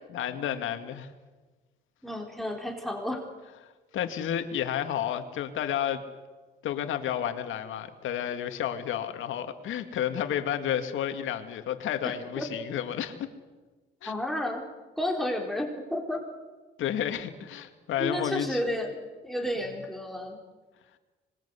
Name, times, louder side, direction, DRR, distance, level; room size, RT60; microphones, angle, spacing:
voice 1, 0.1-1.1 3.9-6.0 6.6-13.3 14.0-14.1 16.8-18.6, left 10 dB, 80° left, 8 dB, 2.1 m, -31 dB
voice 2, 2.0-3.2 12.0-12.5 14.1-14.7 15.0-16.2 18.0-20.4, left 1 dB, ahead, 2 dB, 4.2 m, -32 dB
25.5 x 21.5 x 8.3 m, 1.3 s
cardioid pair, 90°, 20 cm